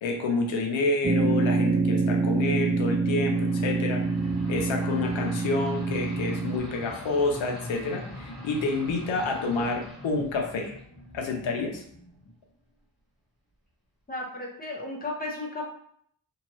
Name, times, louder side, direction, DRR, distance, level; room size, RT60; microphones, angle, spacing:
voice 1, 0.0-4.0 4.5-10.8 11.1-11.8, left 3 dB, 85° left, 3 dB, 0.7 m, -29 dB
sound 1, 1.0-6.6, right 3 dB, 25° right, 0.6 m, -26 dB
sound 2, 3.1-12.4, left 1 dB, ahead, 1.1 m, -43 dB
voice 2, 14.1-15.6, left 2 dB, 20° left, -3 dB, 0.6 m, -34 dB
2.8 x 2.3 x 2.9 m, 0.65 s
wide cardioid pair, 140°, 45 cm